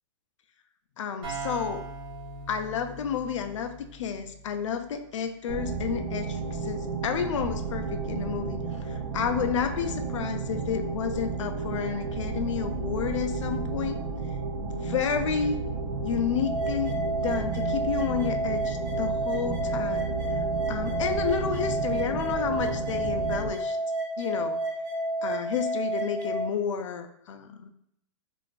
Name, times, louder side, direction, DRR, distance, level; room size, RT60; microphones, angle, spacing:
voice 1, 1.0-1.9 2.5-14.0 14.5-15.6 16.0-20.1 20.7-23.8 24.2-24.6 25.2-27.7, left 7 dB, 75° left, 8 dB, 0.4 m, -31 dB
sound 1, 1.2-4.9, right 3 dB, 20° right, 0.9 m, -40 dB
sound 2, 5.5-23.5, right 4 dB, 75° right, 0.6 m, -32 dB
sound 3, 16.4-26.4, right 1 dB, 50° right, 1.1 m, -31 dB
3.7 x 2.5 x 2.4 m, 0.74 s
hypercardioid pair, 180°, 16 cm